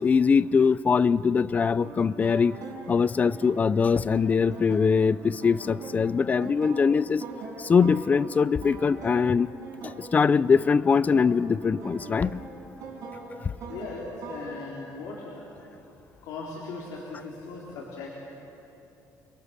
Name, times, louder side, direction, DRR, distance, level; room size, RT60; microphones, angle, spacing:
voice 1, 0.0-2.5 2.9-7.2 7.6-9.5 9.8-12.4 13.4-13.5, left 5 dB, 25° left, 18 dB, 0.5 m, -22 dB
sound 1, 1.8-14.6, right 4 dB, 65° right, 6.2 m, -42 dB
voice 2, 13.7-15.7 16.2-18.1, left 3 dB, 80° left, -4 dB, 3.6 m, -38 dB
29.5 x 22.5 x 6.6 m, 3.0 s
cardioid pair, 135°, 6 cm